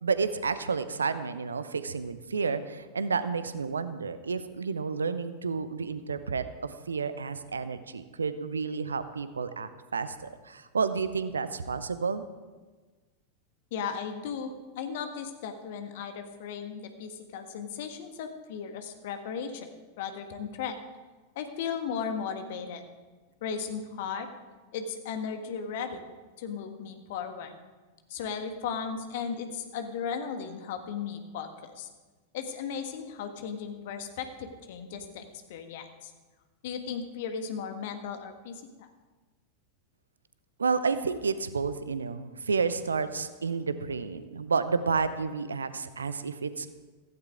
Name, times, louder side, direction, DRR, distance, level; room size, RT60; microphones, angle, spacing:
voice 1, 0.0-12.2 40.6-46.7, right 5 dB, 75° right, 13 dB, 0.8 m, -31 dB
voice 2, 13.7-20.8 21.3-22.8 23.4-24.3 24.7-26.0 26.4-27.5 28.1-31.9 32.3-36.1 36.6-38.9, left 6 dB, 55° left, 6 dB, 1.6 m, -36 dB
16.0 x 15.0 x 3.6 m, 1.3 s
figure-of-eight pair, 90°, 0 cm